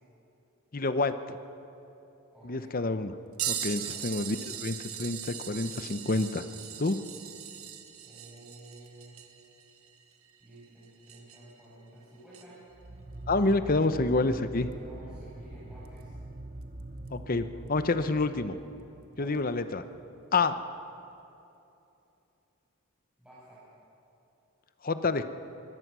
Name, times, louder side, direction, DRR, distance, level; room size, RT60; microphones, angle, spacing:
voice 1, 0.7-1.4 2.4-3.1 3.5-6.4 6.8-7.0 13.3-14.7 17.1-18.6 19.2-19.8 20.3-20.5 24.8-25.2, left 3 dB, 40° left, 10 dB, 0.8 m, -28 dB
voice 2, 2.3-2.7 3.6-4.3 8.0-9.2 10.4-12.6 14.7-16.1 19.1-19.4 23.2-23.6, right 1 dB, 5° right, -10 dB, 5.9 m, -52 dB
sound 1, 3.4-11.6 12.3-12.4 14.7-14.8 15.9-16.0 17.1-17.2, right 10 dB, 85° right, 1.4 m, -39 dB
sound 2, 12.7-20.0, right 1 dB, 35° right, 0.8 m, -44 dB
24.0 x 17.5 x 6.2 m, 2.8 s
head